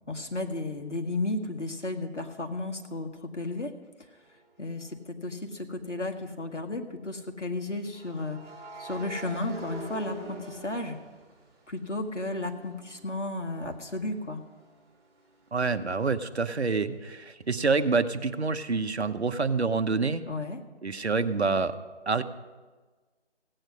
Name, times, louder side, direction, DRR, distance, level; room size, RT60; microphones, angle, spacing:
voice 1, 0.1-3.7 4.6-8.4 8.8-11.0 11.7-14.4 20.3-20.6, left 2 dB, 85° left, 3 dB, 1.9 m, -33 dB
sound 1, 4.6-4.8 7.9-11.8 12.2-15.8, right 2 dB, 20° right, 3.3 m, -45 dB
voice 2, 15.5-20.2 20.8-21.7 22.1-22.2, right 4 dB, 65° right, 10 dB, 1.0 m, -27 dB
16.5 x 9.0 x 6.2 m, 1.3 s
figure-of-eight pair, 155°, 35 cm